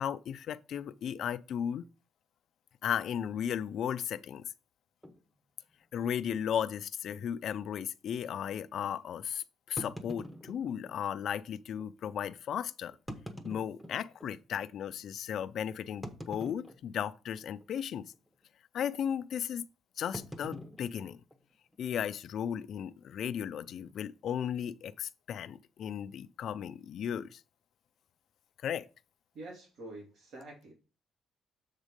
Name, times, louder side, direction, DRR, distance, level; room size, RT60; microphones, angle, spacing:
voice 1, 0.0-1.8 2.8-4.5 5.9-13.0 13.4-18.1 18.7-19.6 20.0-21.2 21.8-27.4 28.6-28.9, left 9 dB, 60° left, 0.4 m, -35 dB
sound 1, 5.0-5.2 5.9-6.1 6.4-6.5 7.1-7.2 9.8-11.0 11.8-11.9 12.9-14.3 14.9-15.0 16.0-17.1 17.4-17.8 18.0-18.3 20.1-21.8, equal, 5° right, 1.0 m, -45 dB
voice 2, 29.3-30.7, right 2 dB, 60° right, 2.5 m, -46 dB
7.3 x 3.7 x 5.2 m
cardioid pair, 125°, 0 cm